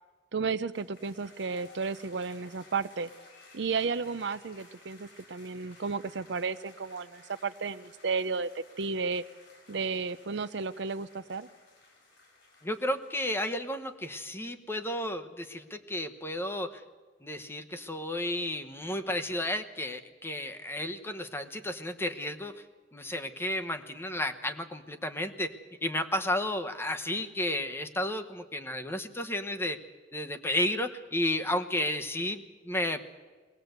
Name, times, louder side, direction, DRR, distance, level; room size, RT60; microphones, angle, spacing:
voice 1, 0.3-3.1 3.5-9.2 9.7-11.5, right 4 dB, 70° right, 13 dB, 0.6 m, -33 dB
sound 1, 0.7-13.9, left 2 dB, 75° left, 5.6 m, -57 dB
voice 2, 12.6-16.8 17.2-22.6 22.9-25.5 25.8-29.8 30.1-33.0, left 1 dB, 15° left, 7 dB, 1.0 m, -32 dB
21.5 x 19.0 x 8.0 m, 1.4 s
head